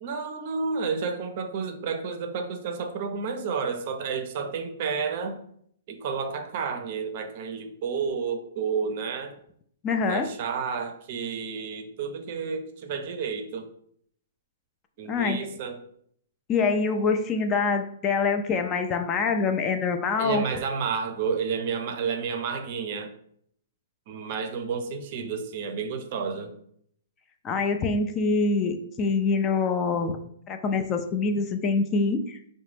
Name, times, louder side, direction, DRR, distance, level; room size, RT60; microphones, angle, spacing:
voice 1, 0.0-5.4 5.9-9.3 10.1-13.7 15.0-15.8 20.2-23.1 24.1-26.5, right 5 dB, 50° right, 6 dB, 0.5 m, -31 dB
voice 2, 9.8-10.3 15.1-15.4 16.5-20.4 27.4-30.2 30.5-32.5, left 4 dB, 25° left, 6 dB, 0.3 m, -25 dB
3.8 x 2.1 x 3.2 m, 0.66 s
hypercardioid pair, 140°, 0 cm